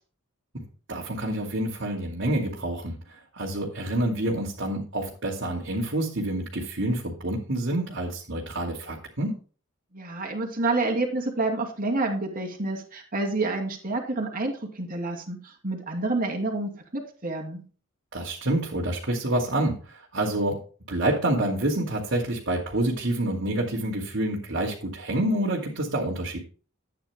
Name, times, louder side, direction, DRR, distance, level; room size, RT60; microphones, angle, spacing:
voice 1, 0.9-3.0 3.3-9.4 18.1-20.6 20.9-26.4, right 1 dB, 60° right, -4 dB, 2.5 m, -27 dB
voice 2, 9.9-17.6, right 2 dB, 45° right, 2 dB, 2.7 m, -28 dB
13.0 x 9.4 x 2.2 m, 0.38 s
head